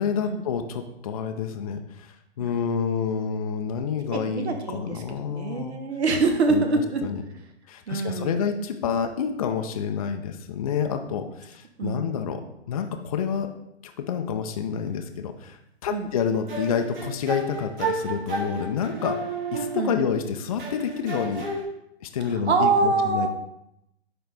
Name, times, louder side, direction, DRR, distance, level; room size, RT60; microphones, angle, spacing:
voice 1, 0.0-5.8 6.5-6.6 7.0-7.2 7.7-12.4 12.7-13.5 13.8-19.2 19.5-21.5 22.0-23.3, left 7 dB, 35° left, 5 dB, 0.5 m, -28 dB
voice 2, 4.1-7.0 7.9-8.4 11.8-12.3 15.9-16.1 19.7-20.0 22.3-23.3, right 4 dB, 75° right, 5 dB, 1.3 m, -25 dB
sound 1, 16.5-20.2 20.6-21.6, right 3 dB, 50° right, 2.4 m, -32 dB
10.5 x 3.8 x 3.4 m, 0.82 s
hypercardioid pair, 145°, 33 cm